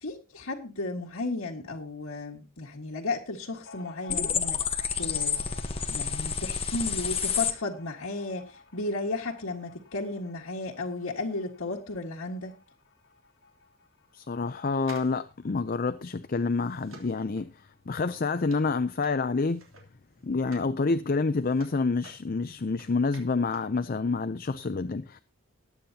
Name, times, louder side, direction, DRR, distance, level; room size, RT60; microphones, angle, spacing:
voice 1, 0.0-4.6 5.0-5.4 5.9-12.6, left 2 dB, 80° left, 1.8 m, -34 dB
sound 1, 3.6-16.8 17.0-17.1 17.4-18.2, left 3 dB, 60° left, 2.6 m, -52 dB
sound 2, 4.1-7.5, left 6 dB, 25° left, 1.1 m, -29 dB
voice 2, 14.1-17.5 17.9-19.6 20.2-25.2, left 4 dB, 45° left, 0.5 m, -28 dB
sound 3, 14.8-20.8 21.1-23.8 24.0-24.1, right 3 dB, 75° right, 3.2 m, -53 dB
20.0 x 8.7 x 2.8 m
head